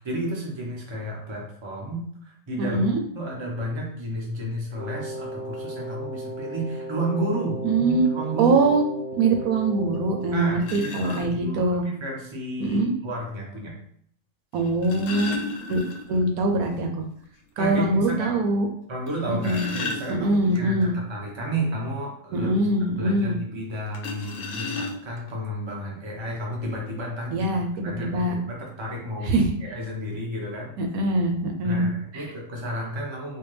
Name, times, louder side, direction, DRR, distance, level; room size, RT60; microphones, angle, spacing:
voice 1, 0.0-8.6 10.3-13.7 17.6-18.4 18.9-22.7 23.0-27.5 27.8-29.3 29.6-30.7 31.6-33.4, right 1 dB, 25° right, -2 dB, 0.8 m, -32 dB
voice 2, 2.6-3.0 7.6-8.1 8.4-8.8 9.2-11.8 12.6-12.9 14.5-15.4 15.7-17.0 17.6-18.7 19.3-19.7 20.2-20.9 22.3-23.3 27.3-28.3 29.2-29.5 30.8-32.3, right 2 dB, 85° right, 4 dB, 1.1 m, -23 dB
Wind instrument woodwind instrument, 4.8-10.5, right 1 dB, 50° right, 1.1 m, -35 dB
sound 1, 9.9-10.0 10.6-11.3 12.7-12.8 14.6-16.3 16.6-16.7 17.1-17.2 17.7-17.8 19.1-20.6 23.9-25.3 26.2-26.3 26.6-26.8, left 3 dB, 75° left, 1.0 m, -33 dB
4.4 x 2.2 x 3.2 m, 0.65 s
omnidirectional pair, 1.5 m